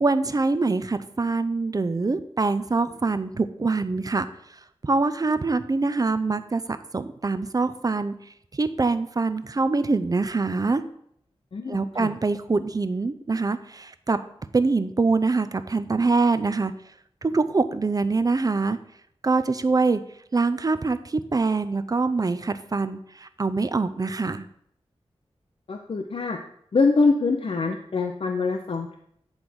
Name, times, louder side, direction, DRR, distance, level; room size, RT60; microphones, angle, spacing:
voice 1, 0.0-4.3 4.8-8.1 8.5-10.8 11.7-14.2 14.5-16.7 17.2-18.8 19.2-20.0 20.3-24.5, right 3 dB, 35° right, 12 dB, 0.5 m, -24 dB
voice 2, 11.5-12.1 25.7-26.4 26.7-28.9, left 4 dB, 60° left, 4 dB, 0.6 m, -24 dB
9.6 x 3.5 x 6.0 m, 0.70 s
wide cardioid pair, 90°, 11 cm